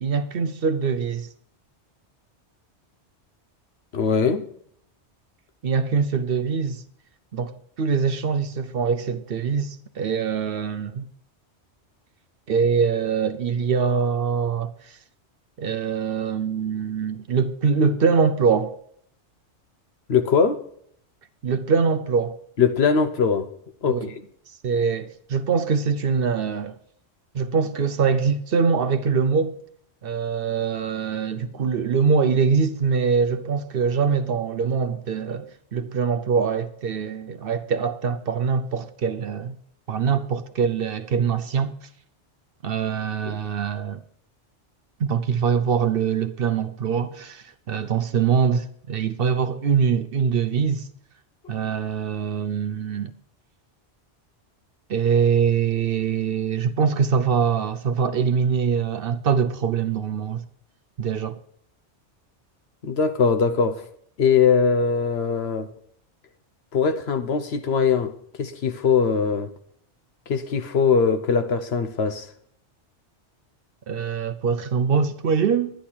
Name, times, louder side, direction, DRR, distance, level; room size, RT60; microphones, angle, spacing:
voice 1, 0.0-1.3 5.6-6.8 7.3-11.1 12.5-15.0 15.6-18.8 21.4-22.4 23.9-24.1 24.6-26.8 27.3-29.6 30.0-39.6 39.9-41.7 42.6-44.0 45.0-50.9 51.5-53.1 54.9-60.4 61.0-61.4 73.9-75.7, right 6 dB, 60° right, 0.8 m, -23 dB
voice 2, 3.9-4.5 20.1-20.6 22.6-23.5 23.8-24.1 43.2-43.4 62.8-63.8 64.2-65.7 66.7-68.1 68.4-69.5 70.3-72.3, left 6 dB, 65° left, 1.2 m, -21 dB
11.5 x 10.5 x 4.3 m
omnidirectional pair, 1.2 m